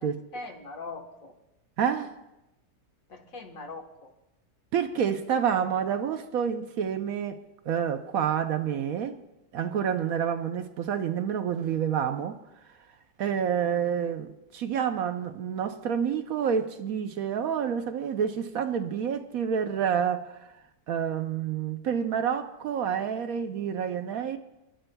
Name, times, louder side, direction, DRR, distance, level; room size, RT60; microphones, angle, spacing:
voice 1, 0.3-1.3 3.1-4.1 13.6-13.9, left 3 dB, 55° left, 1.7 m, -41 dB
voice 2, 1.8-2.1 4.7-9.2 9.5-12.4 13.2-20.5 20.9-24.4, right 8 dB, 65° right, 1.0 m, -28 dB
28.5 x 11.5 x 2.2 m
omnidirectional pair, 1.7 m